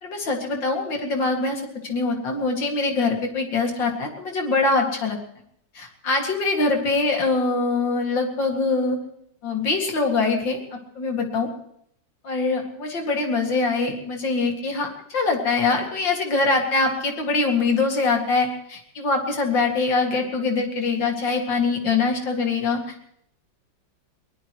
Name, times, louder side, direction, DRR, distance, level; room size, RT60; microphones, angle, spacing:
voice 1, 0.0-5.2 5.7-9.0 9.4-10.6 11.0-11.5 12.2-22.8, left 3 dB, 70° left, 2 dB, 3.1 m, -23 dB
22.5 x 19.5 x 3.2 m, 0.71 s
omnidirectional pair, 2.1 m